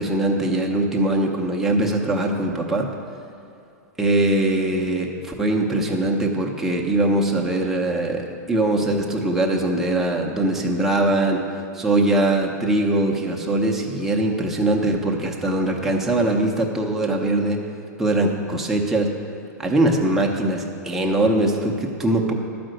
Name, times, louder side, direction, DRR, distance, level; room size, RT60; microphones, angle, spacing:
voice 1, 0.0-2.9 4.0-11.4 11.7-17.6 18.0-19.1 19.6-22.3, right 1 dB, 5° right, -1 dB, 0.8 m, -21 dB
12.0 x 5.1 x 7.7 m, 2.7 s
supercardioid pair, 165°, 9 cm